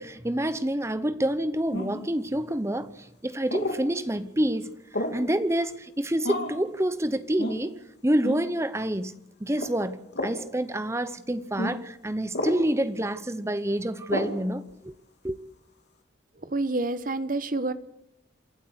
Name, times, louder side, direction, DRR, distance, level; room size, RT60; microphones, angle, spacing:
voice 1, 0.0-4.7 5.0-9.1 9.4-14.9 15.2-15.4, right 1 dB, 15° right, 0.9 m, -28 dB
sound 1, 1.7-2.1 3.5-3.8 4.9-5.3 6.2-6.6 7.4-7.6 8.2-8.4 9.5-9.7 10.1-10.4 11.6-11.7 12.3-12.6 14.1-14.4, left 1 dB, 55° left, 2.8 m, -30 dB
voice 2, 16.4-17.7, right 2 dB, 45° right, 1.1 m, -28 dB
27.5 x 12.0 x 8.1 m
head